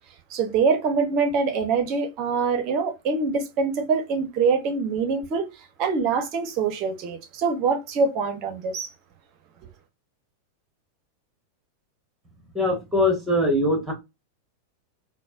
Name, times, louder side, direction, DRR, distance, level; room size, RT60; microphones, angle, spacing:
voice 1, 0.3-5.5 5.8-8.9, right 5 dB, 40° right, 0.7 m, -24 dB
voice 2, 12.5-13.9, left 1 dB, 15° right, 1.4 m, -22 dB
4.0 x 2.1 x 2.4 m
figure-of-eight pair, 90°, 0 cm